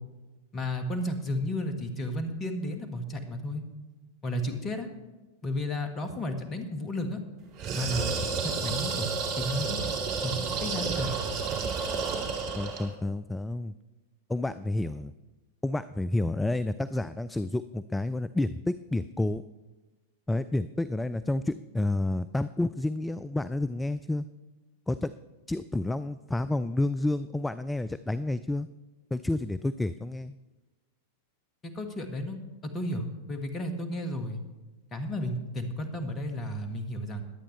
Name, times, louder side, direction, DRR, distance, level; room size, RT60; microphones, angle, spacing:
voice 1, 0.5-3.6 4.2-4.9 5.4-7.2 7.7-8.1 8.4-9.8 10.2-11.2 31.6-34.4 34.9-37.2, left 1 dB, 25° left, 6 dB, 1.7 m, -33 dB
sound 1, 7.6-12.9, right 5 dB, 45° right, 2.5 m, -31 dB
voice 2, 12.6-13.7 14.3-15.1 15.6-19.4 20.3-24.3 24.9-25.1 25.5-28.7 29.1-30.3, left 2 dB, 5° left, 15 dB, 0.3 m, -30 dB
21.5 x 8.6 x 3.3 m, 1.2 s
figure-of-eight pair, 95°, 0 cm